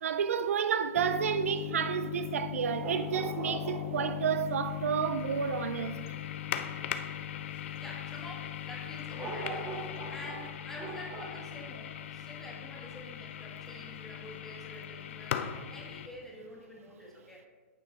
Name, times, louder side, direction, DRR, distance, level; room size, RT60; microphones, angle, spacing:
voice 1, 0.0-6.0, right 7 dB, 80° right, 0.5 m, -30 dB
sound 1, 1.0-16.1, left 11 dB, 60° left, 0.6 m, -39 dB
sound 2, 2.8-4.5 9.2-11.5 12.9-13.0, right 3 dB, 25° right, 1.3 m, -41 dB
voice 2, 7.8-17.4, left 1 dB, 5° left, 1.6 m, -48 dB
9.0 x 5.1 x 4.2 m
hypercardioid pair, 145°, 8 cm